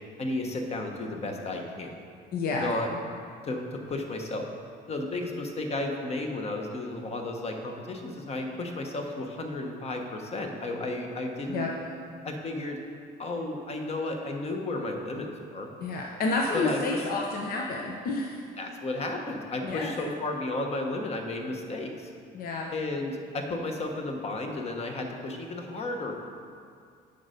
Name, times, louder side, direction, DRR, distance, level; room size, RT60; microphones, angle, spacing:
voice 1, 0.2-1.9 2.5-2.9 3.4-4.5 4.9-11.7 12.2-12.8 13.2-15.7 16.5-17.0 18.6-22.1 22.7-26.2, left 2 dB, 40° left, 3 dB, 1.1 m, -33 dB
voice 2, 2.3-2.7 11.5-11.7 15.8-18.4 19.6-19.9 22.3-22.7, left 3 dB, 60° left, 0 dB, 0.8 m, -30 dB
8.6 x 5.3 x 5.1 m, 2.2 s
cardioid pair, 110°, 17 cm